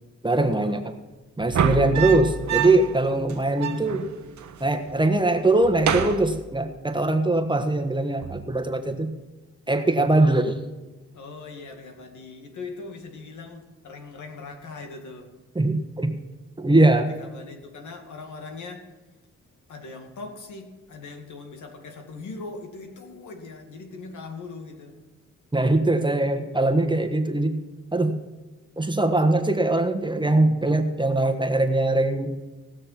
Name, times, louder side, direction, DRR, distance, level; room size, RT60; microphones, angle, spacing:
voice 1, 0.2-0.9 1.4-4.1 4.6-9.1 9.7-10.5 15.5-16.1 16.6-17.1 25.5-27.6 27.9-28.1 28.8-32.3, right 2 dB, 15° right, 1.4 m, -21 dB
sound 1, 1.4-3.0 3.3-3.4 3.6-4.6 4.9-5.2 5.6-7.0 8.2-8.6, right 6 dB, 70° right, 1.1 m, -28 dB
voice 2, 11.1-15.3 17.0-18.9 19.7-25.0, left 3 dB, 75° left, 2.1 m, -40 dB
18.5 x 6.6 x 6.0 m
cardioid pair, 70°, 30 cm